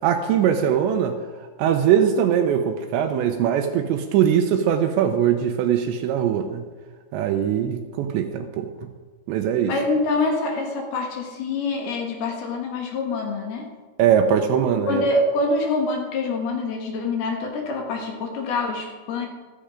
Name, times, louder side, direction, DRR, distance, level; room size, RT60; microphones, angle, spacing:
voice 1, 0.0-1.2 1.6-6.6 7.1-8.9 9.3-9.7 14.0-15.0, right 9 dB, 75° right, 6 dB, 2.9 m, -21 dB
voice 2, 9.7-13.7 14.9-19.3, left 2 dB, 65° left, 1 dB, 3.1 m, -25 dB
14.5 x 14.0 x 5.1 m, 1.4 s
omnidirectional pair, 5.6 m